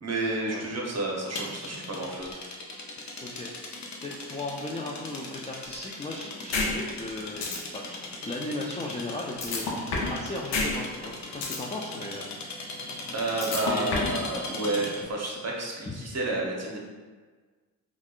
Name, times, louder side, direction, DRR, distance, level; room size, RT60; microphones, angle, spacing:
voice 1, 0.0-2.3 13.1-16.8, right 2 dB, 40° right, -2 dB, 0.9 m, -30 dB
sound 1, 1.3-15.1, left 2 dB, 45° left, 0.7 m, -39 dB
voice 2, 3.2-3.5 4.0-7.5 7.7-9.7 10.1-12.3 13.3-14.1 15.8-16.0, left 2 dB, 15° left, -3 dB, 0.4 m, -36 dB
sound 2, 6.5-6.7 7.0-7.1 7.4-7.6 9.4-10.2 10.5-10.7 11.0-11.6 13.4-14.2, left 4 dB, 80° left, 0.7 m, -28 dB
3.4 x 2.4 x 2.4 m, 1.4 s
supercardioid pair, 45°, 41 cm